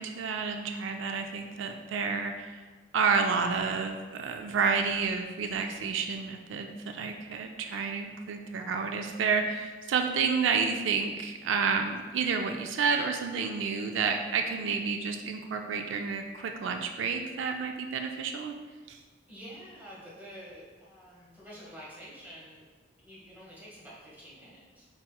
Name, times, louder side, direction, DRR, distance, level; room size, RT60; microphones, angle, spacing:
voice 1, 0.0-2.6 2.9-18.5 18.9-19.0, right 5 dB, 80° right, 4 dB, 0.3 m, -30 dB
voice 2, 19.3-22.6 23.0-24.9, equal, 10° right, -7 dB, 1.1 m, -48 dB
4.6 x 4.2 x 2.3 m, 1.4 s
head